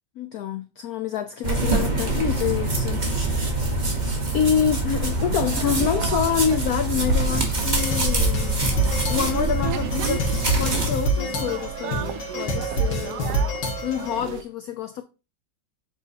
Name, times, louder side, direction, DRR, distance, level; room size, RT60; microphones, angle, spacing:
voice 1, 0.2-4.1 4.3-8.7 9.1-10.3 10.6-15.0, left 8 dB, 85° left, 0.8 m, -27 dB
sound 1, 1.4-10.9, right 2 dB, 25° right, 1.1 m, -24 dB
sound 2, 5.0-14.4, right 10 dB, 70° right, 1.0 m, -35 dB
sound 3, 7.3-14.2, right 1 dB, 65° left, 2.1 m, -27 dB
7.3 x 4.5 x 2.8 m
omnidirectional pair, 2.2 m